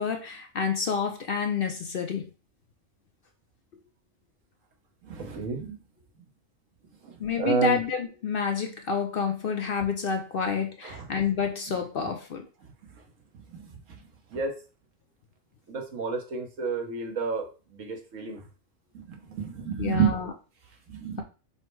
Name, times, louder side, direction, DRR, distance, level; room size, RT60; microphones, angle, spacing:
voice 1, 0.0-2.3 7.2-12.5 19.8-20.3, left 6 dB, 55° left, 0.7 m, -29 dB
voice 2, 5.1-5.8 7.4-7.8 10.8-11.0 13.5-13.6 14.3-14.5 15.7-17.5 17.7-18.4 18.9-20.1 20.9-21.2, right 5 dB, 80° right, 1.4 m, -29 dB
5.5 x 2.1 x 4.5 m
omnidirectional pair, 1.3 m